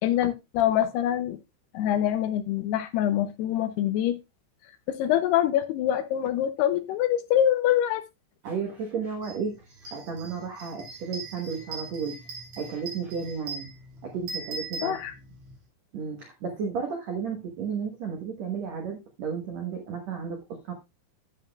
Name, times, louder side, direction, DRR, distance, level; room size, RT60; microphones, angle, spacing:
voice 1, 0.0-1.4 1.7-4.2 4.9-8.0 14.8-15.1, left 11 dB, 80° left, 10 dB, 2.5 m, -25 dB
voice 2, 8.4-12.2 12.6-13.7 14.0-14.9 15.9-20.7, right 6 dB, 80° right, 2 dB, 1.5 m, -33 dB
sound 1, 9.2-9.4 9.7-15.6, right 4 dB, 50° right, 4.2 m, -40 dB
11.5 x 7.9 x 2.3 m, 0.22 s
omnidirectional pair, 5.0 m